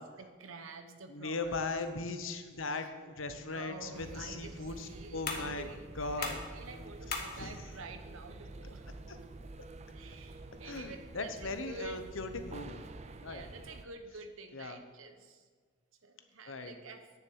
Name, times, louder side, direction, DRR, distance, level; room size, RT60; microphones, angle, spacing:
voice 1, 0.2-1.7 2.6-2.9 3.5-8.9 9.9-12.0 13.2-15.5 16.0-17.1, right 3 dB, 90° right, 7 dB, 1.0 m, -49 dB
voice 2, 1.1-5.7 6.0-6.4 7.4-7.6 9.1-9.2 10.6-12.9 13.2-13.4 14.5-14.8 16.5-16.8, left 3 dB, 80° left, 8 dB, 1.0 m, -38 dB
sound 1, 3.7-10.7, left 4 dB, 50° left, 1.4 m, -45 dB
sound 2, 3.9-13.9, right 2 dB, 35° right, 0.5 m, -48 dB
9.9 x 7.1 x 6.4 m, 1.5 s
head